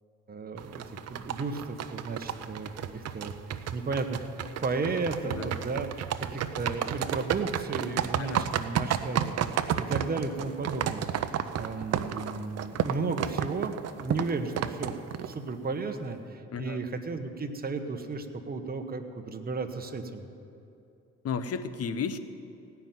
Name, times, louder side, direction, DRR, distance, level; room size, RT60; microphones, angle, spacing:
voice 1, 0.3-3.3 3.7-20.2, right 3 dB, 30° right, 6 dB, 1.1 m, -34 dB
sound 1, 0.6-15.5, right 9 dB, 55° right, 0.6 m, -32 dB
voice 2, 21.2-22.2, left 6 dB, 55° left, 11 dB, 0.9 m, -33 dB
17.5 x 5.8 x 9.3 m, 2.7 s
cardioid pair, 90°, 30 cm